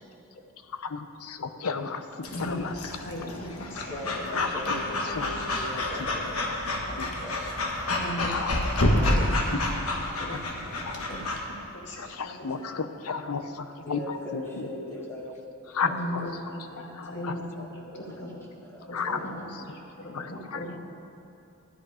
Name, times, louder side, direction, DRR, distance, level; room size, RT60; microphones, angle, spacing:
voice 1, 0.7-3.0 4.3-4.6 5.1-5.3 6.5-6.6 6.9-7.1 8.2-8.5 10.2-10.4 10.8-11.0 12.0-14.7 15.7-16.3 16.9-17.3 18.9-19.2 20.0-20.6, left 5 dB, 90° left, 9 dB, 0.7 m, -33 dB
Breathing / Dog, 2.2-11.4, left 1 dB, 75° left, 1.4 m, -29 dB
voice 2, 2.3-2.7 3.0-4.4 4.9-5.3 6.9-7.0 7.9-11.2 11.6-12.0 12.4-12.6 15.8-17.7 18.2-18.3 18.8-20.8, left 1 dB, 55° left, -2 dB, 2.1 m, -38 dB
voice 3, 3.9-7.5 7.9-8.4 13.8-16.3 16.7-16.8 17.1-17.2 17.5-19.4, left 1 dB, 10° left, -5 dB, 1.6 m, -41 dB
12.5 x 10.5 x 5.0 m, 2.9 s
head